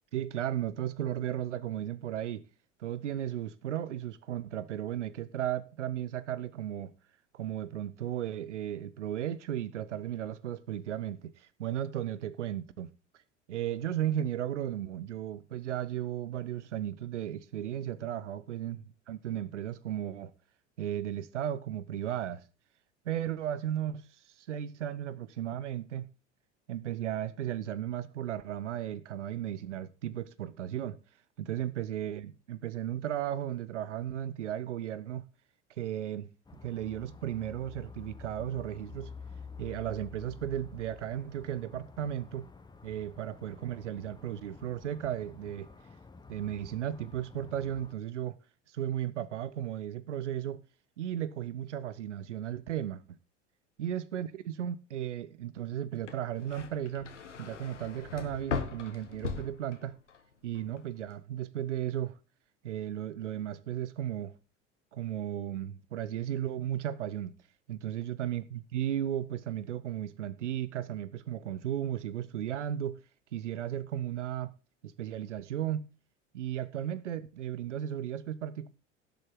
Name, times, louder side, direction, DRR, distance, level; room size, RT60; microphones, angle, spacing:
voice 1, 0.1-2.5 2.8-6.9 7.3-12.9 13.5-20.3 20.8-22.4 23.1-24.1 24.4-26.1 26.7-31.0 31.4-35.2 35.8-36.3 36.6-39.1 39.6-42.5 42.8-45.7 46.3-48.4 48.7-50.6 51.0-53.0 53.8-57.1 57.4-59.9 60.4-62.2 62.6-64.3 64.9-67.3 67.7-73.0 73.3-74.5 74.8-75.8 76.3-78.7, right 11 dB, 80° right, 0.7 m, -35 dB
sound 1, 36.5-48.0, left 4 dB, 10° left, 1.0 m, -49 dB
sound 2, 56.0-60.2 60.6-61.1, left 5 dB, 85° left, 1.3 m, -39 dB
17.0 x 7.0 x 3.7 m
figure-of-eight pair, 70°, 35 cm